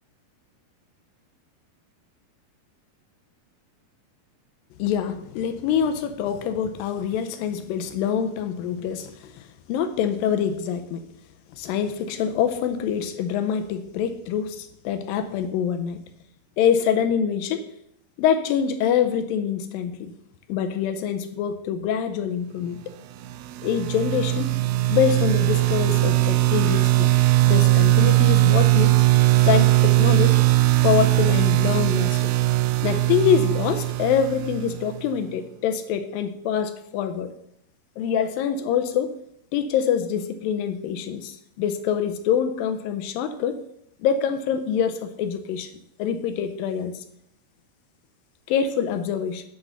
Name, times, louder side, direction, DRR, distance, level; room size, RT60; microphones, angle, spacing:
voice 1, 4.8-11.1 11.6-16.0 16.6-17.7 18.2-20.1 20.5-22.8 23.6-24.5 24.9-27.1 27.4-29.0 29.4-30.4 30.8-32.3 32.8-37.3 38.0-39.2 39.5-43.6 44.0-45.7 46.0-47.0 48.5-49.4, left 8 dB, 80° left, 8 dB, 2.1 m, -25 dB
sound 1, 23.2-35.0, right 17 dB, 85° right, 2.4 m, -19 dB
8.4 x 5.9 x 6.6 m, 0.73 s
omnidirectional pair, 4.6 m